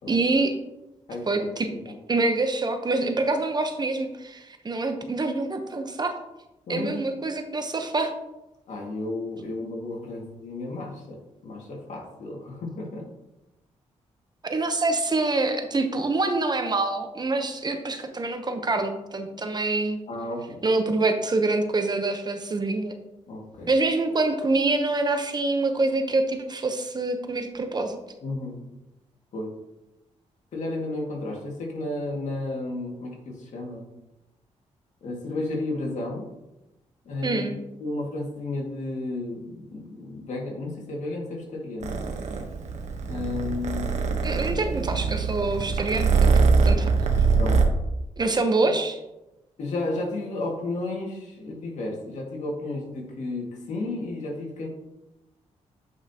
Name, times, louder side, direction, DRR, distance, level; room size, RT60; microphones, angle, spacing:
voice 1, 0.1-0.5 1.3-6.1 6.7-8.1 14.4-20.0 20.6-23.0 23.7-28.0 37.2-37.5 44.2-46.3 46.6-46.9 48.2-49.0, right 3 dB, 35° right, 6 dB, 1.0 m, -26 dB
voice 2, 1.1-2.0 6.7-7.0 8.7-13.0 20.1-20.6 23.3-23.7 28.2-28.6 29.3-29.5 30.5-33.8 35.0-36.3 37.1-37.4 37.8-42.0 43.1-43.9 44.6-44.7 47.4-47.6 48.7-48.8 49.6-54.7, left 2 dB, 75° left, -1 dB, 2.1 m, -33 dB
Purr, 41.8-47.6, right 5 dB, 70° right, 1.1 m, -23 dB
9.0 x 5.7 x 2.9 m, 0.94 s
cardioid pair, 80°, 12 cm